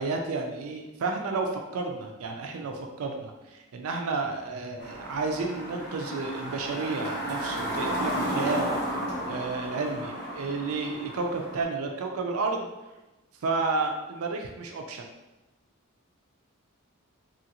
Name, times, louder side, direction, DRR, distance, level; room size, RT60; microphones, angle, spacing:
voice 1, 0.0-9.0 9.3-12.7 13.4-15.1, right 3 dB, 85° right, 3 dB, 0.4 m, -31 dB
sound 1, 4.8-11.6, equal, 50° left, 0.9 m, -33 dB
3.0 x 2.5 x 2.8 m, 1.0 s
head